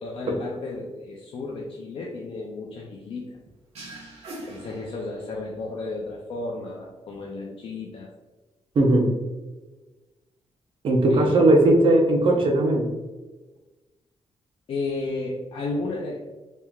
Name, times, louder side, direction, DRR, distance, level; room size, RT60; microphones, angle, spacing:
voice 1, 0.0-3.3 4.4-8.1 11.1-11.6 12.3-12.5 14.7-16.2, left 3 dB, 55° left, -2 dB, 0.5 m, -33 dB
sound 1, 3.7-5.5, right 1 dB, 70° right, 1.2 m, -41 dB
voice 2, 8.8-9.1 10.8-12.9, right 2 dB, 50° right, 2 dB, 0.7 m, -18 dB
4.3 x 3.6 x 2.3 m, 1.2 s
wide cardioid pair, 145°, 11 cm